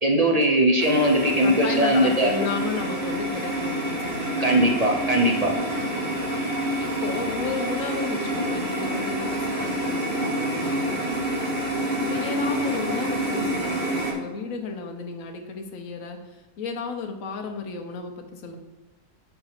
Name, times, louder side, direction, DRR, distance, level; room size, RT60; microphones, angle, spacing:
voice 1, 0.0-2.3 4.4-5.5, right 1 dB, 55° right, 1 dB, 0.4 m, -20 dB
sound 1, 0.8-14.1, right 1 dB, 35° right, 1.2 m, -27 dB
voice 2, 1.4-4.6 5.8-11.5 12.0-18.6, left 4 dB, 60° left, 4 dB, 1.2 m, -33 dB
5.9 x 4.4 x 5.7 m, 1.1 s
omnidirectional pair, 1.7 m